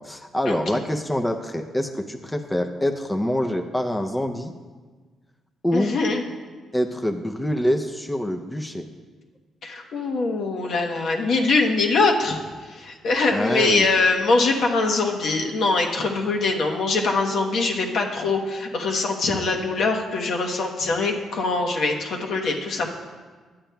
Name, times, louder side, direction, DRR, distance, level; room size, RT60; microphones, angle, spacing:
voice 1, 0.0-4.5 5.6-5.9 6.7-8.9 13.3-13.9, equal, 10° left, 5 dB, 0.5 m, -25 dB
voice 2, 5.7-6.2 9.6-12.4 12.7-22.9, left 3 dB, 65° left, 1 dB, 1.1 m, -23 dB
11.5 x 8.7 x 2.3 m, 1.4 s
cardioid pair, 90°, 0 cm